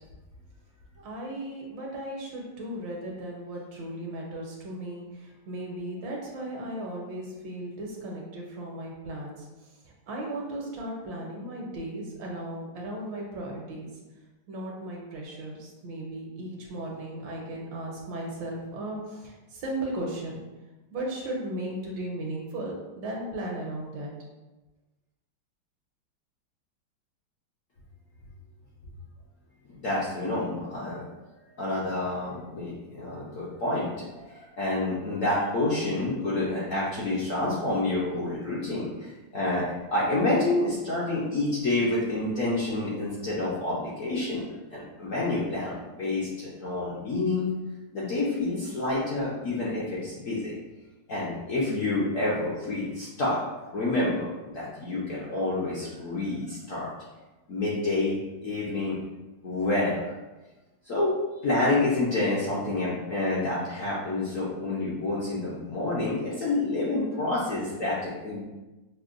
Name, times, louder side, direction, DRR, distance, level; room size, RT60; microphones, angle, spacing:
voice 1, 1.0-13.9 14.5-20.4 20.9-24.1, right 1 dB, 75° right, -1 dB, 1.5 m, -36 dB
voice 2, 29.7-31.0 31.6-44.4 44.7-47.5 47.9-50.5 51.1-53.4 53.7-56.9 57.5-58.2 58.4-59.0 59.4-60.1 60.8-68.4, left 2 dB, 60° left, -7 dB, 0.9 m, -28 dB
6.3 x 2.1 x 2.5 m, 1.1 s
omnidirectional pair, 2.1 m